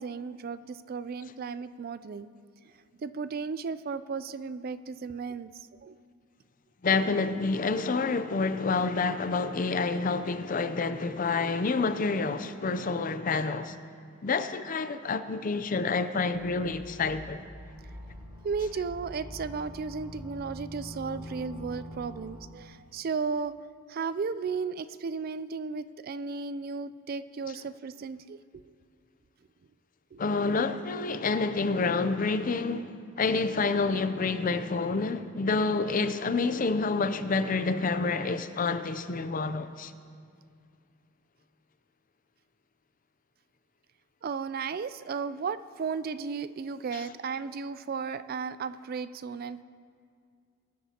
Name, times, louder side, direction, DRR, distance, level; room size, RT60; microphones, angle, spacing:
voice 1, 0.0-2.3 3.0-5.9 18.4-23.6 23.9-28.6 30.1-30.2 44.2-49.6, right 5 dB, 45° right, 0.4 m, -35 dB
voice 2, 6.8-13.7 14.2-17.4 30.2-32.9 33.2-39.9 46.9-47.0, left 4 dB, 40° left, 0.5 m, -28 dB
sound 1, 16.3-22.6, equal, 15° right, 3.2 m, -44 dB
22.5 x 12.0 x 2.9 m
head